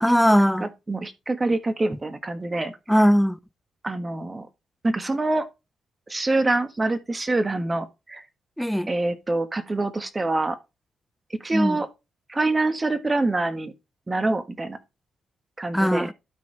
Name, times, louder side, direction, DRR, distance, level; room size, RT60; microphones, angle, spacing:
voice 1, 0.0-0.7 2.9-3.4 8.6-8.9 11.5-11.8 15.7-16.1, equal, ahead, 0.6 m, -19 dB
voice 2, 0.6-2.7 3.8-4.5 4.8-5.5 6.1-8.2 8.9-10.6 11.3-11.9 12.3-13.7 14.1-14.8 15.6-16.1, right 2 dB, 25° right, 1.5 m, -25 dB
12.5 x 4.9 x 3.4 m
cardioid pair, 85°, 0 cm